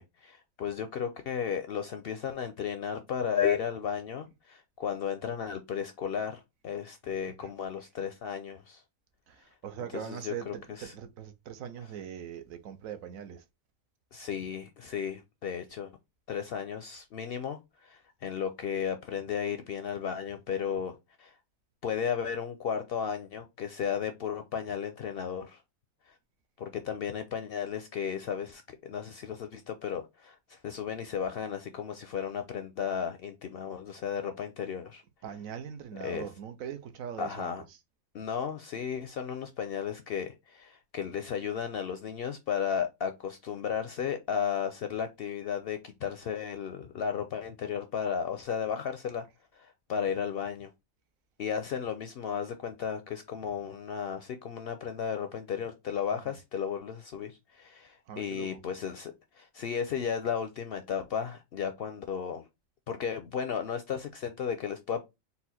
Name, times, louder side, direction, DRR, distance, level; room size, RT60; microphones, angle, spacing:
voice 1, 0.0-8.8 9.9-10.9 14.1-15.9 16.3-21.3 21.8-25.6 26.1-26.2 26.6-35.0 36.0-36.3 37.2-37.6 38.1-49.3 49.5-50.7 51.4-62.5 62.9-65.0, left 7 dB, 65° left, 0.6 m, -34 dB
voice 2, 9.3-13.4 35.2-37.5 58.1-58.6, right 8 dB, 85° right, 1.1 m, -41 dB
4.2 x 2.3 x 4.1 m
omnidirectional pair, 1.4 m